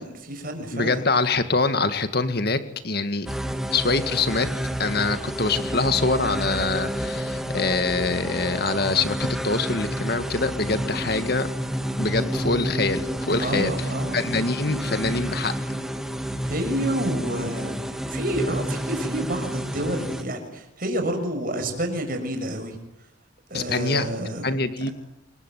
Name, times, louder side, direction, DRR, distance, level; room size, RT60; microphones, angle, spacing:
voice 1, 0.0-1.0 13.4-14.4 16.4-17.7 18.1-22.8 23.5-24.5, right 1 dB, 45° right, 5 dB, 6.4 m, -29 dB
voice 2, 0.7-3.3 3.7-4.5 4.8-11.5 12.0-13.9 14.1-15.6 23.5-24.1 24.4-24.9, left 3 dB, 55° left, 10 dB, 2.1 m, -24 dB
sound 1, 3.3-20.2, equal, ahead, 2.0 m, -30 dB
27.5 x 22.0 x 9.4 m, 0.84 s
head